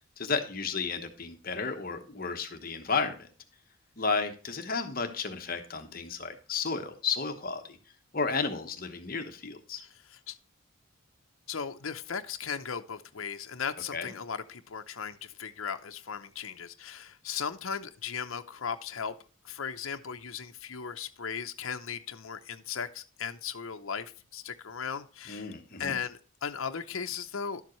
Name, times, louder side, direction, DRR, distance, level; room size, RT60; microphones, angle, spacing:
voice 1, 0.2-3.3 4.0-7.8 8.1-9.8 13.9-14.1 25.3-26.0, left 4 dB, 45° left, 6 dB, 1.1 m, -33 dB
voice 2, 9.8-10.4 11.5-19.1 19.4-25.5 25.8-27.6, left 6 dB, 80° left, 7 dB, 0.7 m, -37 dB
11.5 x 7.3 x 3.1 m, 0.38 s
head